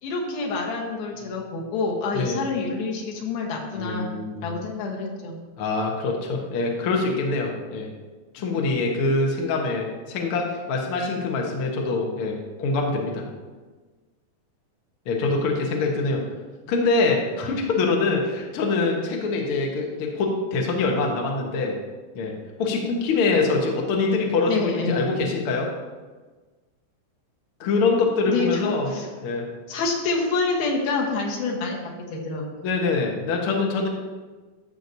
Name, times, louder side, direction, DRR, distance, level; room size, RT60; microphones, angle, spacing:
voice 1, 0.0-4.1 4.4-5.4 24.5-25.1 28.3-29.1 29.7-31.8 32.1-32.6, left 3 dB, 90° left, -1 dB, 3.2 m, -27 dB
voice 2, 3.8-4.5 5.6-7.9 8.3-13.2 15.1-16.2 16.7-21.7 22.1-22.3 22.6-25.7 27.6-28.9 29.2-29.4 32.6-33.9, left 3 dB, 65° left, 0 dB, 1.4 m, -24 dB
13.5 x 6.4 x 2.7 m, 1.3 s
omnidirectional pair, 4.1 m